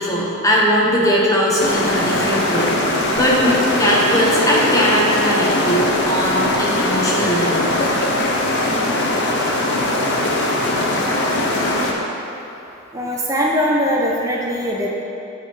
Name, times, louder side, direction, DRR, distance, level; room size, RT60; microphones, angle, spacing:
voice 1, 0.0-7.7, equal, 15° left, -4 dB, 1.0 m, -19 dB
sound 1, 1.6-11.9, left 1 dB, 55° left, 0.7 m, -20 dB
voice 2, 12.9-14.9, equal, 15° right, -3 dB, 0.5 m, -20 dB
7.5 x 4.4 x 4.7 m, 2.8 s
head